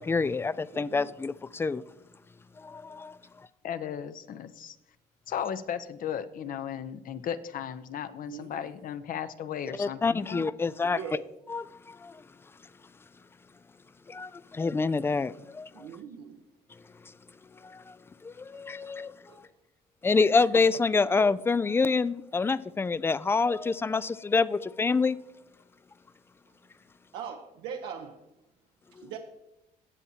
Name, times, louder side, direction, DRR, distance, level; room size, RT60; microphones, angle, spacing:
voice 1, 0.0-1.8 2.6-3.2 9.8-11.0 11.5-12.2 14.1-15.9 17.6-18.0 18.2-19.1 20.0-25.2 29.0-29.1, left 4 dB, 15° left, 0.3 m, -27 dB
voice 2, 0.7-1.1 8.3-8.6 10.8-11.3 15.7-16.4 18.5-18.6 19.3-19.4 20.2-20.3 27.1-28.2 28.9-29.2, right 7 dB, 85° right, 0.9 m, -41 dB
voice 3, 3.6-4.8 5.3-10.4, left 8 dB, 55° left, 0.8 m, -35 dB
18.0 x 7.3 x 2.8 m
cardioid pair, 110°, 17 cm